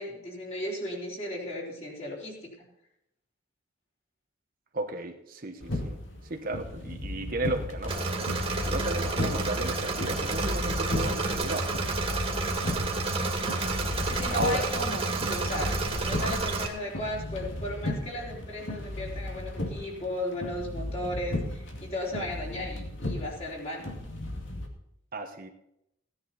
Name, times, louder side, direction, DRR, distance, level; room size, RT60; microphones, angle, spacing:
voice 1, 0.0-2.7 14.0-23.9, left 1 dB, 35° left, -3 dB, 3.9 m, -35 dB
voice 2, 4.7-6.0 6.2-8.1 8.6-11.7 14.3-14.7 25.1-25.5, right 2 dB, 50° right, 5 dB, 1.2 m, -34 dB
sound 1, 5.6-24.7, left 1 dB, 75° left, 2.3 m, -35 dB
Engine / Mechanisms, 7.9-16.7, right 3 dB, 30° right, 2.2 m, -30 dB
16.5 x 10.5 x 4.2 m, 0.80 s
head